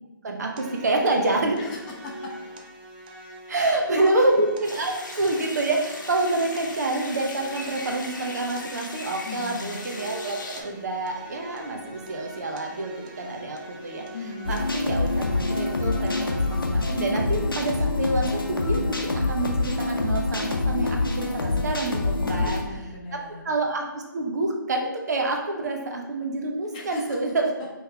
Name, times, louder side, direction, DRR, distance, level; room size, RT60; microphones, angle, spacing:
voice 1, 0.2-1.6 3.5-14.0 14.5-22.6 23.1-23.2 23.4-27.5, right 2 dB, 50° right, 2 dB, 0.8 m, -27 dB
sound 1, 0.6-16.6, right 1 dB, 25° right, 0.4 m, -43 dB
voice 2, 1.6-2.3 3.5-4.1 6.3-6.5 9.2-9.8 14.1-14.6 22.2-23.5 26.7-27.2, left 3 dB, 25° left, -1 dB, 0.7 m, -38 dB
sound 2, 4.6-10.6, left 2 dB, 65° left, 0.9 m, -39 dB
sound 3, 14.4-22.6, left 2 dB, 90° left, 0.8 m, -25 dB
4.6 x 3.2 x 3.3 m, 1.1 s
figure-of-eight pair, 145°, 11 cm